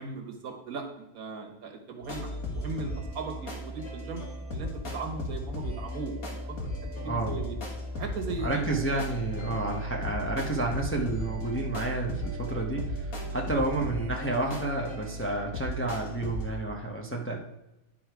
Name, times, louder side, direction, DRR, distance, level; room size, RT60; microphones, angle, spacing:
voice 1, 0.0-6.4 6.8-7.6 7.9-8.7 9.5-9.7 13.2-13.6, right 3 dB, 80° right, 3 dB, 1.6 m, -38 dB
sound 1, 2.0-16.5, equal, 75° left, 2.0 m, -36 dB
voice 2, 7.0-7.4 8.4-17.4, right 2 dB, 10° left, -1 dB, 0.7 m, -30 dB
10.0 x 4.8 x 4.6 m, 0.96 s
omnidirectional pair, 1.5 m